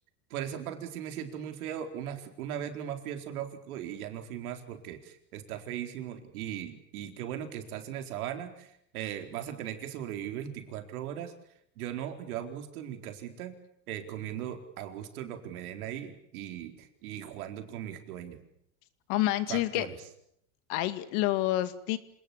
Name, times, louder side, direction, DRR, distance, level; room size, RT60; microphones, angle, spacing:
voice 1, 0.3-11.3 11.8-13.5 13.9-18.4 19.5-19.9, right 10 dB, 85° right, 6 dB, 4.4 m, -38 dB
voice 2, 19.1-19.9 20.7-22.0, left 16 dB, 65° left, 12 dB, 2.4 m, -28 dB
27.5 x 19.5 x 8.6 m, 0.73 s
supercardioid pair, 125°, 43 cm